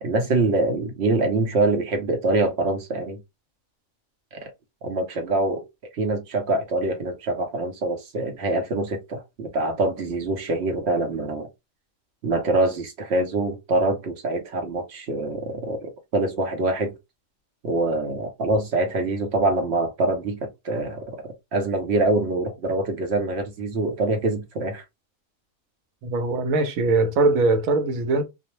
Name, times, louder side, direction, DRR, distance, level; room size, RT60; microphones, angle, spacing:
voice 1, 0.0-3.2 4.3-4.5 4.8-5.6 5.9-11.5 12.2-16.9 17.6-21.2 21.5-24.8, right 2 dB, 60° right, 0.8 m, -24 dB
voice 2, 26.0-28.2, right 3 dB, 85° right, 1.1 m, -21 dB
2.5 x 2.0 x 2.9 m
omnidirectional pair, 1.4 m